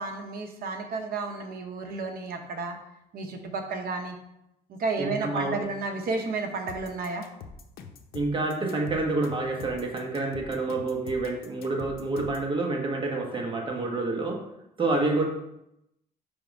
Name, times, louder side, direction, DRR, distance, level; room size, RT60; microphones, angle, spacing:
voice 1, 0.0-2.8 3.1-4.2 4.7-7.3, right 3 dB, 60° right, 4 dB, 1.0 m, -32 dB
voice 2, 5.0-5.6 8.1-14.4 14.8-15.3, right 2 dB, 30° right, 1 dB, 1.4 m, -28 dB
sound 1, 6.7-12.5, left 5 dB, 65° left, 0.7 m, -44 dB
5.6 x 3.5 x 5.3 m, 0.84 s
cardioid pair, 110°, 17 cm